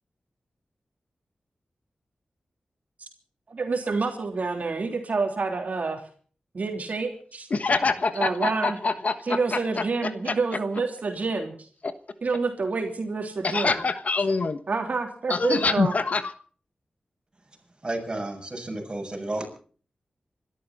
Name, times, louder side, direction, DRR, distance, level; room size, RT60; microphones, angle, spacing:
voice 1, 3.5-6.1 6.5-7.5 8.1-8.8 9.2-11.7 12.2-13.8 14.7-15.9, right 4 dB, 60° right, 3 dB, 3.3 m, -28 dB
voice 2, 7.5-9.8 10.3-10.4 11.8-11.9 13.4-14.6 15.3-16.3, left 4 dB, 55° left, 11 dB, 1.3 m, -25 dB
voice 3, 17.8-19.5, right 2 dB, 30° right, 1 dB, 7.2 m, -32 dB
26.5 x 13.0 x 4.2 m, 0.44 s
wide cardioid pair, 80°, 3 cm